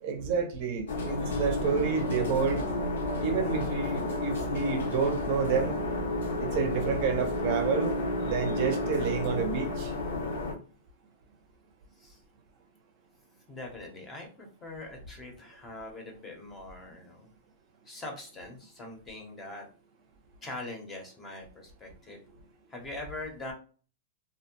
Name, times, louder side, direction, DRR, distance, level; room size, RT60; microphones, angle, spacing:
voice 1, 0.0-2.6 3.2-5.8 6.4-7.9 8.2-9.9, right 6 dB, 45° right, 6 dB, 0.5 m, -29 dB
sound 1, 0.9-10.5, left 2 dB, 80° left, 0.7 m, -31 dB
voice 2, 13.5-17.3 17.8-19.7 20.4-22.2 22.7-23.5, left 2 dB, 15° left, 2 dB, 0.6 m, -42 dB
2.5 x 2.0 x 2.8 m, 0.38 s
supercardioid pair, 160°, 0 cm